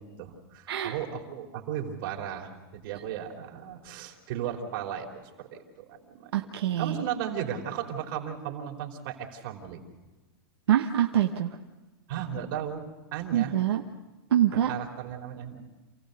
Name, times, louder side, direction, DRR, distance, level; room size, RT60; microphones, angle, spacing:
voice 1, 0.0-9.8 12.1-12.8 13.1-13.5 14.5-15.7, right 9 dB, 55° right, 2 dB, 3.3 m, -36 dB
voice 2, 6.3-7.0 10.7-11.6 13.3-13.8 14.3-14.7, right 11 dB, 85° right, 3 dB, 1.1 m, -25 dB
28.0 x 16.0 x 6.6 m, 1.2 s
supercardioid pair, 145°, 13 cm